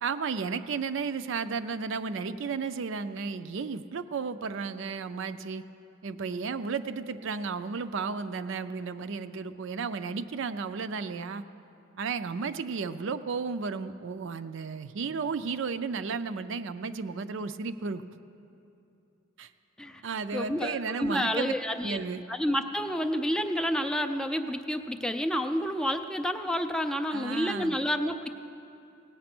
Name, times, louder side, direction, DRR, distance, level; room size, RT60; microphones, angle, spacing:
voice 1, 0.0-5.6 6.0-11.4 12.0-18.0 19.4-19.5 20.0-21.5 21.8-22.2 27.1-27.8, right 5 dB, 65° right, 11 dB, 0.4 m, -33 dB
voice 2, 20.3-22.0 22.3-28.3, equal, 5° left, 5 dB, 0.4 m, -29 dB
17.0 x 8.7 x 6.0 m, 2.7 s
head